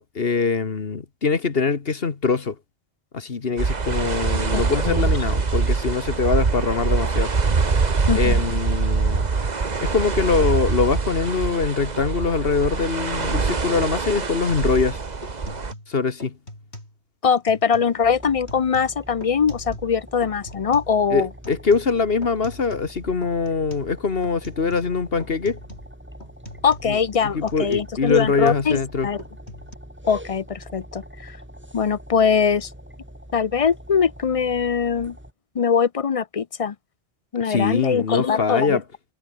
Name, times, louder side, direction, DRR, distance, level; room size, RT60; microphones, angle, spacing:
voice 1, 0.0-2.6 3.1-7.3 8.1-9.3 9.8-15.0 15.9-16.3 21.1-25.6 26.8-27.0 27.3-29.1 37.5-38.8, left 4 dB, 60° left, 1.8 m, -23 dB
sound 1, 3.6-15.7, right 4 dB, 40° right, 1.4 m, -23 dB
voice 2, 4.5-5.1 8.1-8.4 17.2-21.3 26.6-29.2 30.1-31.4 31.7-32.7 33.3-35.2 35.5-36.7 37.3-38.8, left 6 dB, 40° left, 0.5 m, -22 dB
sound 2, 13.7-13.9 14.2-15.9 16.2-17.0 17.2-17.9 18.2-20.0 20.2-22.9 23.2-23.9 24.2-24.9 25.2-25.9 26.2-28.9 29.2-29.7, left 1 dB, 75° left, 8.3 m, -42 dB
sound 3, 17.8-35.3, equal, 10° right, 4.5 m, -43 dB
omnidirectional pair, 1.1 m